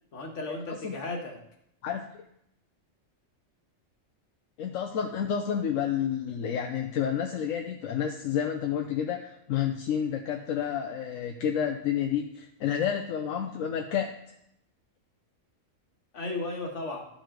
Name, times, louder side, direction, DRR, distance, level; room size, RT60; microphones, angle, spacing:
voice 1, 0.1-1.4 16.1-17.1, left 2 dB, 65° left, 1 dB, 1.7 m, -35 dB
voice 2, 4.6-14.1, left 8 dB, 85° left, 3 dB, 1.0 m, -30 dB
12.5 x 5.2 x 3.7 m, 0.76 s
omnidirectional pair, 1.4 m